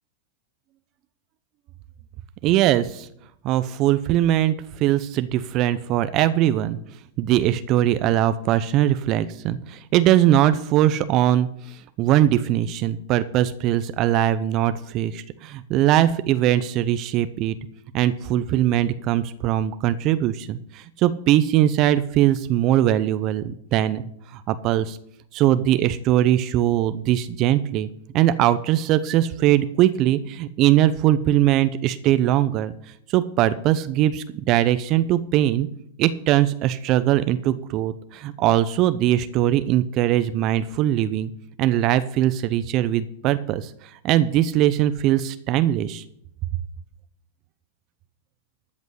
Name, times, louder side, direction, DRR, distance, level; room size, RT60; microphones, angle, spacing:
voice 1, 2.4-3.1 3.4-6.8 7.2-17.5 17.9-24.0 24.3-25.0 25.3-27.9 28.1-32.7 33.1-35.7 36.0-41.3 41.6-43.7 44.0-46.0, right 12 dB, 45° right, 13 dB, 0.7 m, -21 dB
13.5 x 5.2 x 8.1 m, 0.72 s
hypercardioid pair, 105°, 0 cm